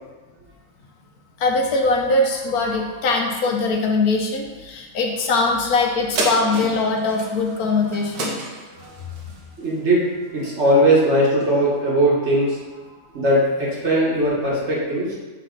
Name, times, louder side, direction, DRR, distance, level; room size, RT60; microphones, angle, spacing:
voice 1, 1.4-8.3, left 3 dB, 75° left, 2 dB, 1.2 m, -21 dB
sound 1, 6.2-10.9 11.4-11.5, right 2 dB, 75° right, 1.5 m, -30 dB
voice 2, 7.2-7.9 8.8-8.9 9.6-12.6 13.1-15.1, right 1 dB, 45° right, -5 dB, 1.7 m, -20 dB
6.1 x 4.2 x 3.8 m, 1.3 s
omnidirectional pair, 1.7 m